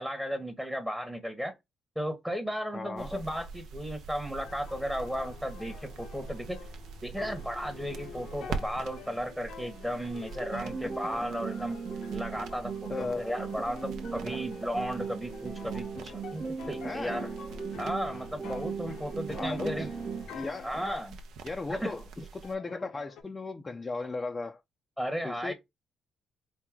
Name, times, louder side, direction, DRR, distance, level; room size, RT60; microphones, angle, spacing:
voice 1, 0.0-1.5 2.0-6.6 7.0-11.8 12.1-17.3 17.8-19.9 20.6-21.2 21.7-21.9 25.0-25.5, equal, 5° right, 0.9 m, -35 dB
voice 2, 2.7-3.2 10.8-10.9 12.9-13.3 14.3-14.4 16.8-17.2 19.4-19.9 20.3-20.8 21.4-24.6 25.2-25.5, left 3 dB, 25° left, 0.5 m, -36 dB
sound 1, 3.0-22.5, right 4 dB, 80° right, 0.7 m, -45 dB
sound 2, 4.3-20.8 21.5-21.6 22.4-23.2, left 6 dB, 75° left, 0.8 m, -48 dB
sound 3, 10.4-20.4, right 6 dB, 30° right, 0.8 m, -38 dB
4.5 x 2.1 x 3.6 m
cardioid pair, 90°, 0 cm